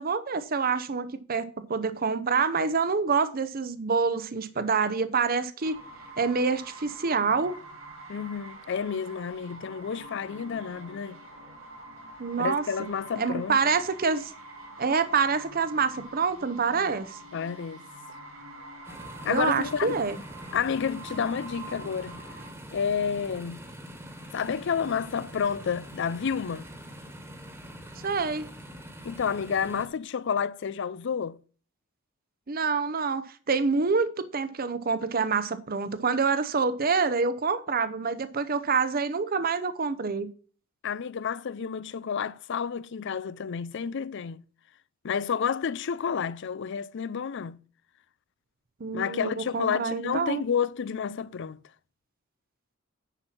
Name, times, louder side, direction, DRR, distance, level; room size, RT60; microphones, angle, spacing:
voice 1, 0.0-5.8 6.2-7.6 12.2-12.6 13.2-14.3 14.8-17.2 19.2-20.2 28.0-28.5 32.5-40.3 48.8-50.4, right 5 dB, 45° right, 0.7 m, -27 dB
sound 1, 5.6-22.5, right 1 dB, 80° right, 3.2 m, -45 dB
voice 2, 8.1-11.2 12.4-13.6 17.3-17.8 19.2-20.0 20.5-22.2 22.7-23.7 24.3-26.7 29.0-31.4 40.8-44.4 45.0-47.6 48.9-51.6, left 7 dB, 60° left, 0.4 m, -30 dB
sound 2, 18.8-29.9, equal, 10° right, 1.5 m, -44 dB
10.0 x 4.4 x 5.9 m
head